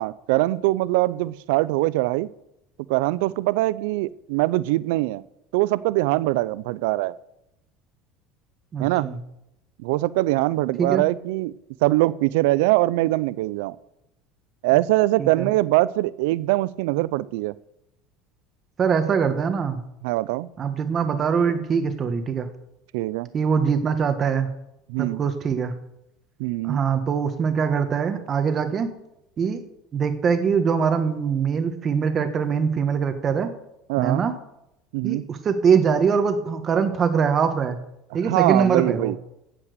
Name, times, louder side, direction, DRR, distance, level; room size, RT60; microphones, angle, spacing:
voice 1, 0.0-2.3 2.9-5.2 5.5-7.1 8.8-9.1 9.8-11.5 11.8-13.8 14.6-17.6 20.0-20.5 22.9-23.3 24.9-25.2 26.4-26.8 33.9-34.2 34.9-35.2 38.3-39.2, right 18 dB, 80° right, 20 dB, 0.4 m, -22 dB
voice 2, 8.7-9.2 10.8-11.0 15.2-15.5 18.8-19.8 20.6-22.5 23.3-24.5 25.0-25.8 26.6-28.9 29.4-29.6 29.9-33.5 34.0-34.3 35.0-37.8 38.1-39.1, right 6 dB, 35° right, 8 dB, 1.5 m, -23 dB
16.0 x 5.9 x 6.8 m, 0.86 s
supercardioid pair, 115°, 0 cm